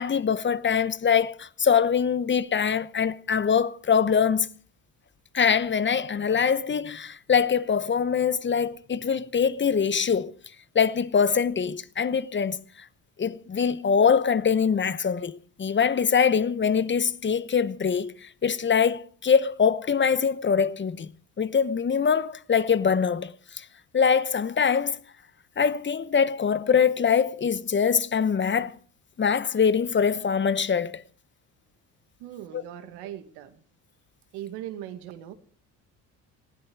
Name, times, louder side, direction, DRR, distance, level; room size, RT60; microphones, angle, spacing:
voice 1, 0.0-4.5 5.3-10.3 10.7-12.6 13.2-21.1 21.4-23.7 23.9-25.0 25.6-28.8 29.2-31.0 32.5-32.6, left 6 dB, 30° left, 0.9 m, -23 dB
voice 2, 32.2-33.6 34.3-35.3, right 12 dB, 85° right, 2.2 m, -39 dB
19.5 x 15.5 x 4.7 m
supercardioid pair, 85°, 39 cm